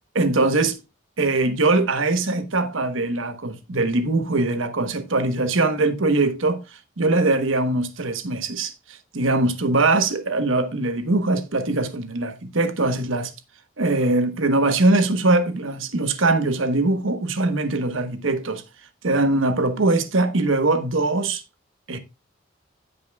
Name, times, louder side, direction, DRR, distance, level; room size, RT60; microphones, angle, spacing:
voice 1, 0.1-0.8 1.2-6.6 7.0-13.3 13.8-18.6 19.0-21.4 21.9-22.0, right 2 dB, 80° right, 1.1 m, -22 dB
16.0 x 5.4 x 2.3 m
head